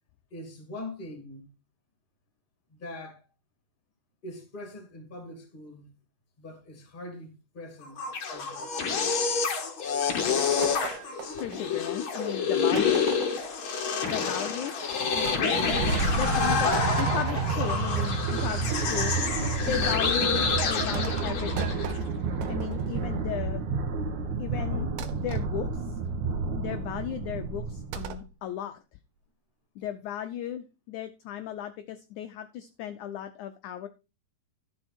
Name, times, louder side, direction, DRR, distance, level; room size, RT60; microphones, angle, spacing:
voice 1, 0.3-1.5 2.7-3.3 4.2-5.9 6.4-8.0 8.3-9.2 19.8-20.0 20.6-20.7, left 1 dB, 15° left, 1.9 m, -43 dB
sound 1, 7.8-22.0, left 6 dB, 55° left, 1.4 m, -28 dB
sound 2, 10.6-12.0 12.8-13.6 15.2-15.4 16.7-17.8 19.5-20.0 20.9-23.0 25.0-25.5 27.9-28.3, right 6 dB, 80° right, 2.7 m, -40 dB
voice 2, 11.3-13.0 14.0-14.9 15.2-16.7 17.0-19.2 19.6-21.8 22.5-23.6 24.4-25.7 26.6-28.8 29.8-33.9, left 10 dB, 80° left, 1.7 m, -36 dB
sound 3, 14.9-28.1, right 4 dB, 60° right, 2.2 m, -30 dB
12.5 x 6.3 x 4.3 m
omnidirectional pair, 4.3 m